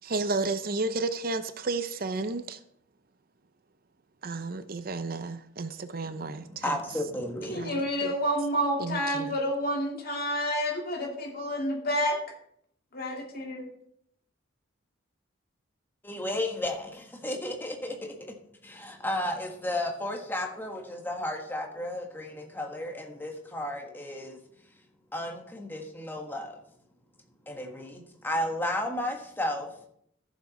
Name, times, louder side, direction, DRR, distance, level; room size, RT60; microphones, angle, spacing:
voice 1, 0.0-2.6 4.2-6.8 7.5-8.1 8.8-9.4, right 3 dB, 45° right, 0.6 m, -32 dB
voice 2, 6.0-7.7 16.0-18.1 18.6-24.4 25.1-26.6 27.5-29.7, left 1 dB, 10° left, 1.4 m, -33 dB
voice 3, 7.5-12.2 12.9-13.7, equal, 50° left, 2.4 m, -29 dB
14.0 x 7.3 x 4.2 m
head